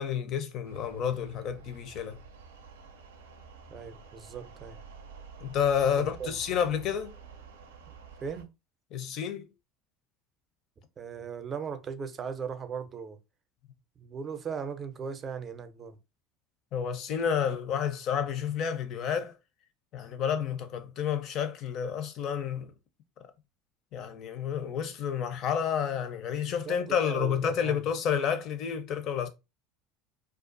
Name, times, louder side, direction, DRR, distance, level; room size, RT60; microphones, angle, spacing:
voice 1, 0.0-2.2 5.4-7.1 8.9-9.5 16.7-19.3 19.9-22.7 23.9-29.3, left 8 dB, 55° left, 0.6 m, -30 dB
sound 1, 0.6-8.4, right 6 dB, 90° right, 0.5 m, -49 dB
voice 2, 3.7-4.8 5.9-6.4 8.2-8.5 11.0-13.2 14.0-16.0 26.6-27.9, right 6 dB, 35° right, 0.5 m, -38 dB
2.4 x 2.3 x 2.5 m
hypercardioid pair, 80°, 0 cm